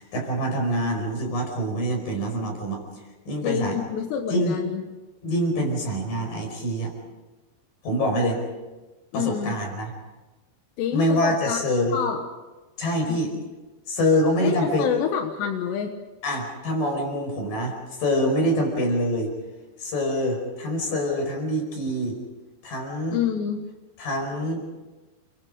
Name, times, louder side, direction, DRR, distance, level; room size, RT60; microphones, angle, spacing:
voice 1, 0.0-2.8 3.3-3.8 4.3-4.6 5.2-6.9 7.8-8.4 9.1-9.9 10.9-12.0 12.8-13.3 13.9-14.9 16.2-19.3 19.8-22.2 22.6-23.2 24.0-24.6, equal, 55° left, 2 dB, 6.7 m, -25 dB
voice 2, 3.4-4.8 9.1-9.6 10.8-11.6 11.9-12.2 13.1-13.2 14.4-15.9 23.1-23.7, left 8 dB, 90° left, 4 dB, 3.6 m, -27 dB
29.5 x 23.0 x 5.1 m, 1.2 s
omnidirectional pair, 4.8 m